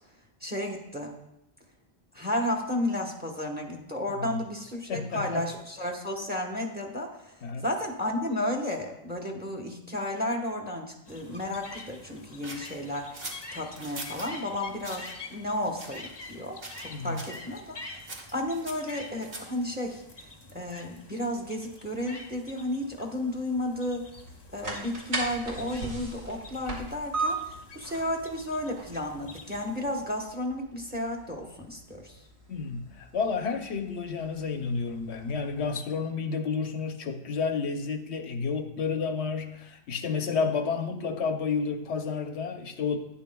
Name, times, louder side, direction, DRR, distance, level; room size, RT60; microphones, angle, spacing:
voice 1, 0.4-1.1 2.1-7.3 7.6-17.8 18.3-24.0 24.5-32.2, left 1 dB, 10° right, 2 dB, 1.1 m, -33 dB
voice 2, 4.9-5.4 7.4-7.6 16.9-17.3 32.5-43.0, left 5 dB, 85° left, 7 dB, 1.0 m, -31 dB
sound 1, 11.1-30.0, left 3 dB, 25° left, 0.7 m, -47 dB
sound 2, 12.4-14.3 14.8-15.1 15.7-16.4 16.6-16.9 17.2-17.4 18.1-19.6, right 2 dB, 60° right, 1.5 m, -42 dB
sound 3, 24.0-35.7, right 3 dB, 85° right, 2.4 m, -39 dB
11.5 x 9.8 x 2.3 m, 0.82 s
omnidirectional pair, 1.1 m